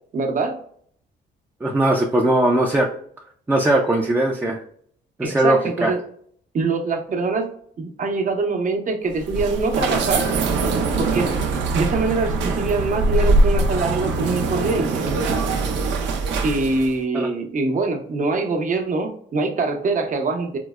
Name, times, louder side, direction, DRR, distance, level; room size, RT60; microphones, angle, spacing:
voice 1, 0.1-0.6 5.2-6.0 6.5-7.5 7.8-10.3 11.0-11.3 11.7-15.1 16.4-20.6, right 3 dB, 45° right, 4 dB, 0.8 m, -24 dB
voice 2, 1.6-2.9 3.5-4.6 5.2-5.9 17.1-17.3, right 1 dB, 10° right, 0 dB, 0.5 m, -19 dB
sound 1, 9.1-17.0, right 3 dB, 85° right, 0.6 m, -22 dB
4.5 x 2.0 x 2.3 m, 0.62 s
cardioid pair, 95°, 18 cm